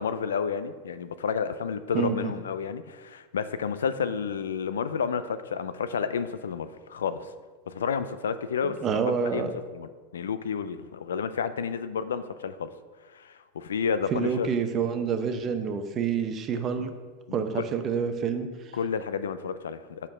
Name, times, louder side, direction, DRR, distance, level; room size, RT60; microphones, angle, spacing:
voice 1, 0.0-7.3 7.7-9.0 9.3-12.7 13.1-14.5 17.3-17.6 18.7-20.0, left 6 dB, 90° left, 12 dB, 0.3 m, -31 dB
voice 2, 1.9-2.3 8.6-9.5 14.1-16.9 17.3-18.5, right 6 dB, 35° right, 7 dB, 0.7 m, -28 dB
5.3 x 4.4 x 6.0 m, 1.4 s
hypercardioid pair, 105°, 0 cm